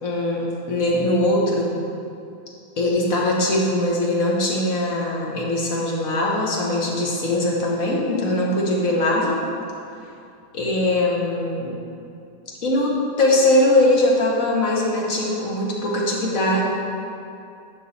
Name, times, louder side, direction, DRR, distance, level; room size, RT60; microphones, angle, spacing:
voice 1, 0.0-1.8 2.8-9.4 10.5-11.8 12.6-16.6, left 1 dB, 85° left, -3 dB, 1.7 m, -21 dB
9.8 x 5.6 x 4.1 m, 2.5 s
omnidirectional pair, 1.4 m